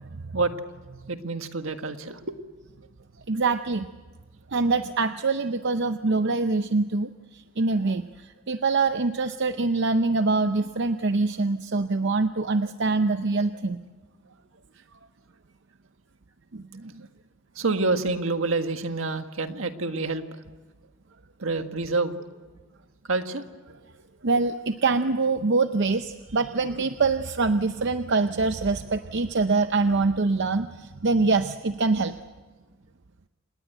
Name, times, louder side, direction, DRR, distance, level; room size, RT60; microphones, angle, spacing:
voice 1, 1.1-2.4 17.5-20.2 21.4-22.2 23.1-23.5, right 3 dB, 75° right, 7 dB, 1.6 m, -27 dB
voice 2, 3.3-3.9 4.5-13.8 16.5-17.1 24.2-32.1, right 3 dB, 60° right, 9 dB, 0.7 m, -24 dB
27.5 x 20.0 x 8.0 m, 1.3 s
head